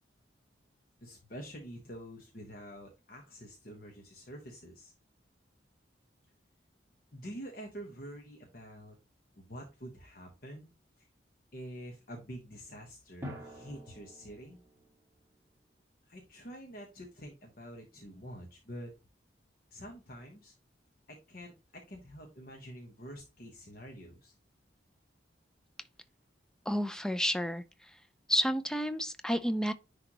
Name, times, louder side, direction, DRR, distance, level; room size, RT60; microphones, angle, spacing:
voice 1, 1.0-4.9 7.1-9.0 9.3-10.7 11.0-11.1 11.5-14.6 16.1-18.9 19.7-20.5 21.1-24.3, equal, 50° left, 1.2 m, -47 dB
Drum, 9.9-10.0 13.2-15.0, equal, 15° right, 1.7 m, -47 dB
voice 2, 26.7-27.6 28.3-29.7, equal, 5° left, 0.4 m, -30 dB
9.9 x 3.5 x 2.9 m
head